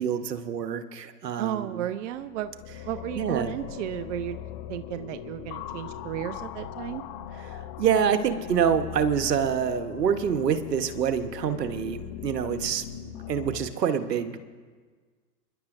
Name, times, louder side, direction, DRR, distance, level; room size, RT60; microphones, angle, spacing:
voice 1, 0.0-1.8 3.1-3.5 7.4-12.8 13.3-14.5, right 7 dB, 75° right, 9 dB, 1.3 m, -26 dB
voice 2, 1.4-2.6 2.9-4.4 4.7-7.0, right 11 dB, 45° right, 10 dB, 0.8 m, -33 dB
sound 1, 2.1-13.7, left 9 dB, 30° left, 0.8 m, -40 dB
29.0 x 11.0 x 2.6 m, 1.5 s
hypercardioid pair, 115°, 49 cm